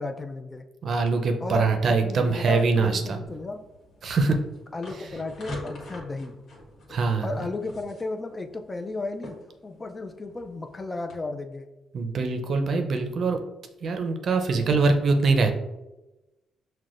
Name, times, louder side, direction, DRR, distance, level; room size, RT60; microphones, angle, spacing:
voice 1, 0.0-0.7 1.4-3.6 4.7-6.4 7.2-9.4 9.6-11.7, left 3 dB, 25° left, 6 dB, 0.4 m, -34 dB
voice 2, 0.8-3.2 4.0-4.4 6.9-7.3 11.9-13.4 13.8-15.6, right 4 dB, 55° right, 5 dB, 0.5 m, -23 dB
sound 1, 3.3-11.2, left 1 dB, 60° left, 1.3 m, -44 dB
5.9 x 2.2 x 2.5 m, 1.0 s
cardioid pair, 90°, 0 cm